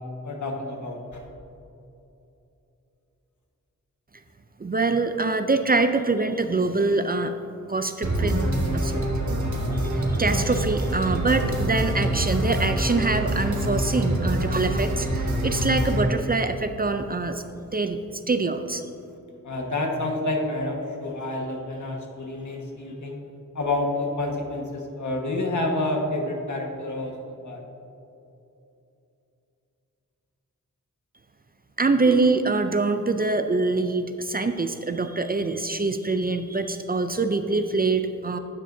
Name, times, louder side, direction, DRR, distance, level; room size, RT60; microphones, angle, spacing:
voice 1, 0.2-1.2 19.4-23.2 23.5-27.6 32.0-32.2, left 2 dB, 65° left, 1 dB, 1.5 m, -29 dB
voice 2, 4.6-7.4 7.7-8.3 8.7-9.1 9.7-17.4 17.7-18.8 31.8-38.4, right 3 dB, 30° right, 8 dB, 0.4 m, -24 dB
sound 1, 8.0-16.0, right 1 dB, 65° right, 1.6 m, -25 dB
12.0 x 9.1 x 2.7 m, 2.8 s
wide cardioid pair, 85°, 32 cm